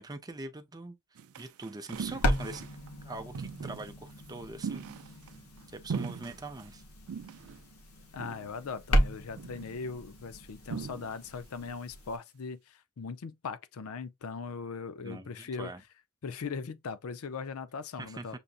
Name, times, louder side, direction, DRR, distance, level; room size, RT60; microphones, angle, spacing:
voice 1, 0.0-2.7 3.0-4.8 5.7-6.8 15.0-15.8 18.0-18.4, right 2 dB, 20° right, 0.5 m, -42 dB
sound 1, 1.2-2.9 3.3-4.0 4.6-5.6 5.9-6.7 7.1-7.6 8.2-8.7 9.4-9.8 10.7-11.3 11.6-11.8, right 6 dB, 75° right, 0.4 m, -40 dB
sound 2, 1.9-12.2, equal, 85° left, 1.0 m, -35 dB
voice 2, 8.1-15.7 16.2-18.4, left 5 dB, 70° left, 0.5 m, -39 dB
6.9 x 2.6 x 2.4 m
head